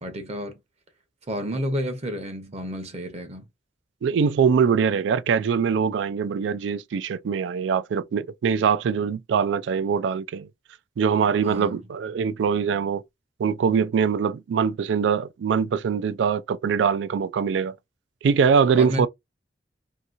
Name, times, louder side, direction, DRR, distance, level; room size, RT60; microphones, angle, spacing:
voice 1, 0.0-0.6 1.3-3.4 11.4-11.9 18.7-19.1, equal, 35° right, 0.8 m, -30 dB
voice 2, 4.0-10.5 11.0-13.0 13.4-17.7 18.2-19.1, right 6 dB, 80° right, 0.3 m, -23 dB
2.8 x 2.7 x 2.4 m
head